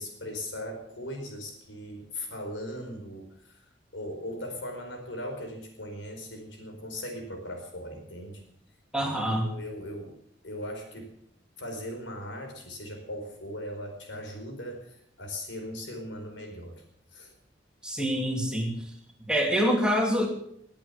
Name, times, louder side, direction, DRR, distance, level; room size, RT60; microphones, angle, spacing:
voice 1, 0.0-3.6 3.9-8.4 9.0-10.1 10.4-11.1 11.6-16.8 17.1-17.3, left 1 dB, 75° left, 4 dB, 4.6 m, -39 dB
voice 2, 8.9-9.5 17.8-18.7 19.3-20.3, equal, 5° right, 1 dB, 2.6 m, -25 dB
20.0 x 8.6 x 7.0 m, 0.69 s
head